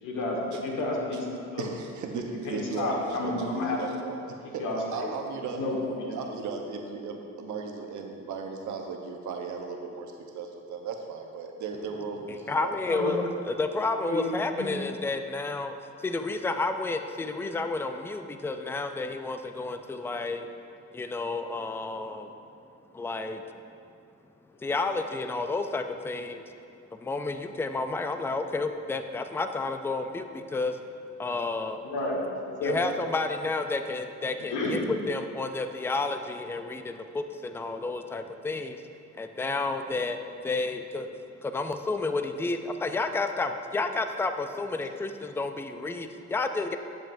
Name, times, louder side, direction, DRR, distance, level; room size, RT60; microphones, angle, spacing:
voice 1, 0.0-1.7 2.4-3.8 4.6-5.1 5.6-6.3 12.9-13.1 14.0-14.7 31.8-32.7 34.5-34.8, left 2 dB, 90° left, -2 dB, 1.5 m, -31 dB
voice 2, 1.6-4.2 4.5-5.6 6.1-12.7, right 5 dB, 75° right, 3 dB, 1.0 m, -36 dB
voice 3, 12.5-20.5 20.9-22.3 22.9-23.4 24.6-26.5 27.0-30.8 31.2-31.8 32.6-38.8 39.1-41.1 41.4-46.8, left 3 dB, 10° left, 7 dB, 0.4 m, -31 dB
10.5 x 7.3 x 2.6 m, 2.5 s
cardioid pair, 90°, 30 cm